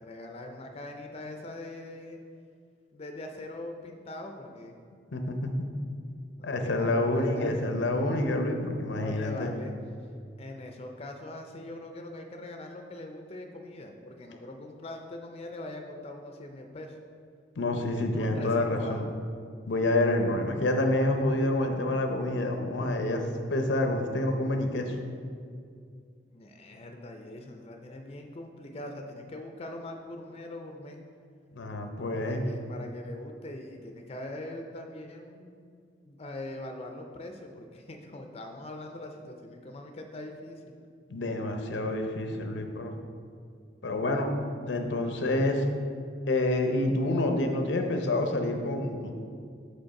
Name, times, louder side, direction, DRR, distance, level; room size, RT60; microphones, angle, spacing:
voice 1, 0.0-2.2 2.9-4.7 6.4-7.7 9.0-9.7 10.4-17.0 18.0-19.1 26.3-31.0 32.1-35.6 36.0-40.6, left 1 dB, 35° left, 3 dB, 0.4 m, -42 dB
voice 2, 5.1-5.7 6.4-9.5 17.6-19.0 19.7-23.2 23.5-25.0 31.5-32.4 41.1-42.9 43.8-44.3 44.7-45.7 46.3-49.1, left 1 dB, 85° left, 5 dB, 0.7 m, -28 dB
5.2 x 4.4 x 5.7 m, 2.2 s
head